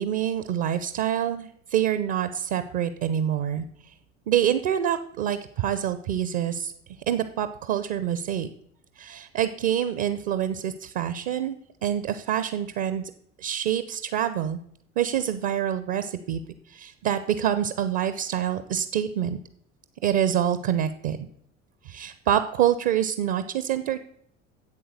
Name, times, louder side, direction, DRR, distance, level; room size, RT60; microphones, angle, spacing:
voice 1, 0.0-3.9 4.3-6.7 7.1-8.5 9.0-11.6 11.8-13.1 13.4-14.6 15.0-16.4 16.7-19.4 20.0-21.3 21.8-24.0, right 10 dB, 55° right, 12 dB, 0.8 m, -26 dB
8.7 x 7.9 x 6.6 m, 0.68 s
figure-of-eight pair, 65°, 39 cm